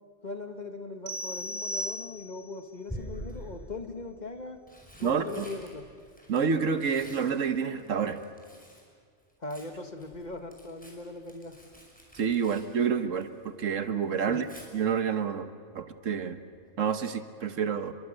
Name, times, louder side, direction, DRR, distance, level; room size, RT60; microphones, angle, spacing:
voice 1, 0.2-4.6 5.0-5.9 9.4-11.6 14.3-14.5, left 2 dB, 35° left, 6 dB, 1.8 m, -40 dB
sound 1, 1.1-2.6, equal, 50° right, 2.2 m, -36 dB
Tearing, 1.4-1.8 2.9-3.6 4.4-8.9 9.2-13.5 13.8-14.7 16.5-16.8 17.1-17.2, equal, 5° left, 5.6 m, -47 dB
voice 2, 5.0-5.4 6.3-8.2 12.1-14.5 14.7-15.5 15.7-16.4 16.8-17.9, right 6 dB, 80° right, 10 dB, 1.6 m, -28 dB
30.0 x 22.5 x 6.7 m, 2.1 s
omnidirectional pair, 1.3 m